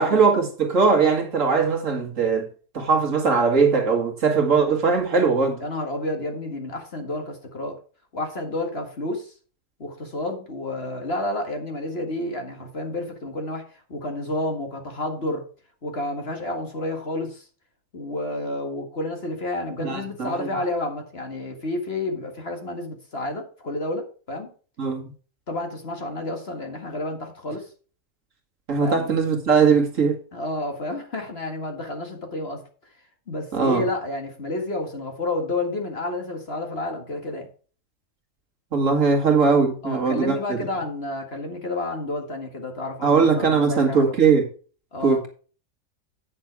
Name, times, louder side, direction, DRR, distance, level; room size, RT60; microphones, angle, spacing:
voice 1, 0.0-2.5 2.7-5.6 19.8-20.5 24.8-25.0 28.7-30.2 33.5-33.9 38.7-40.6 43.0-44.5 45.0-45.3, right 5 dB, 55° right, 2.0 m, -20 dB
voice 2, 5.6-7.8 8.1-9.3 9.8-15.4 15.8-17.5 17.9-24.5 25.5-27.7 28.8-29.2 30.3-32.6 33.3-37.5 39.8-44.1 44.9-45.2, left 2 dB, 40° left, 1.9 m, -30 dB
9.2 x 6.5 x 4.6 m
omnidirectional pair, 1.7 m